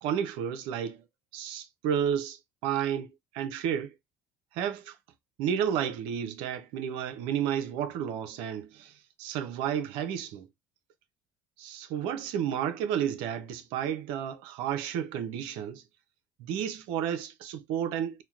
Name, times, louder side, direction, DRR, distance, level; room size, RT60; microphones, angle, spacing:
voice 1, 0.0-1.0 1.3-3.9 4.5-5.0 5.4-10.5 11.6-15.8 16.4-18.2, right 9 dB, 75° right, 0.6 m, -32 dB
4.2 x 2.1 x 2.4 m
supercardioid pair, 80°, 9 cm